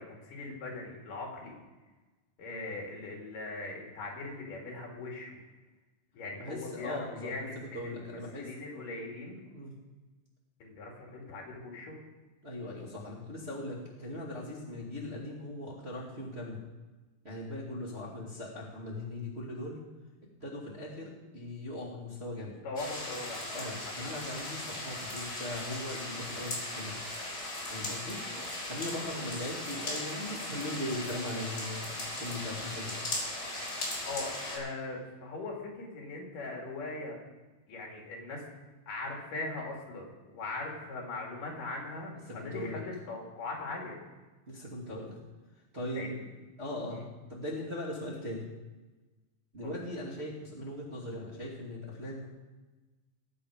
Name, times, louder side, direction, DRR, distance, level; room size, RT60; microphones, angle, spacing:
voice 1, 0.0-1.5 2.4-5.4 6.1-9.4 10.6-12.0 22.6-24.1 34.1-37.2 37.7-38.5 38.9-44.0 45.9-46.2 46.9-47.0, left 2 dB, 60° left, 0 dB, 4.1 m, -40 dB
voice 2, 6.4-7.5 7.7-8.5 9.5-9.7 12.4-16.6 17.2-19.8 20.4-22.6 23.5-27.0 27.7-28.2 28.7-33.0 42.3-42.8 44.5-45.2 45.7-46.3 46.6-48.4 49.5-52.3, left 1 dB, 20° right, -6 dB, 1.9 m, -39 dB
sound 1, 22.8-34.6, left 1 dB, 25° left, 4.4 m, -38 dB
20.5 x 8.5 x 5.1 m, 1.2 s
omnidirectional pair, 4.3 m